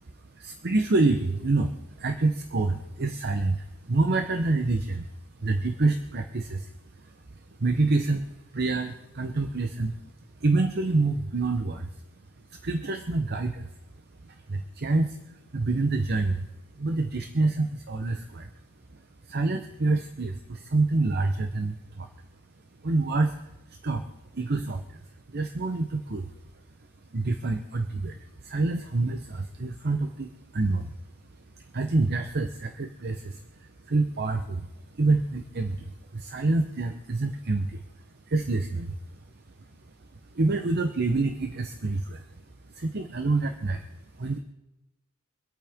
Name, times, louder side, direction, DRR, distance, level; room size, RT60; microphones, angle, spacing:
voice 1, 0.0-12.0 12.4-13.7 14.2-16.5 16.7-18.5 18.9-22.3 22.8-26.5 27.1-31.0 31.2-44.4, right 3 dB, 50° right, 6 dB, 0.8 m, -28 dB
25.0 x 8.7 x 3.6 m, 0.98 s
head